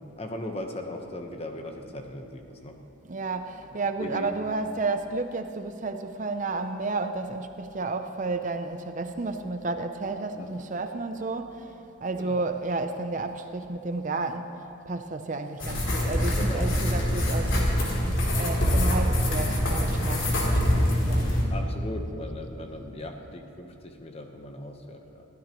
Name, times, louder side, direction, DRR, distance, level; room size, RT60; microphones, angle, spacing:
voice 1, 0.2-2.7 4.0-4.3 10.3-10.5 12.2-12.4 16.4-17.1 21.5-25.3, left 1 dB, 30° left, 4 dB, 1.0 m, -38 dB
voice 2, 3.1-11.7 12.0-14.5 14.9-17.6 18.4-21.4, right 3 dB, 35° right, 7 dB, 0.5 m, -32 dB
sound 1, 15.6-21.4, equal, 65° left, 3.0 m, -24 dB
21.5 x 15.0 x 3.1 m, 2.7 s
head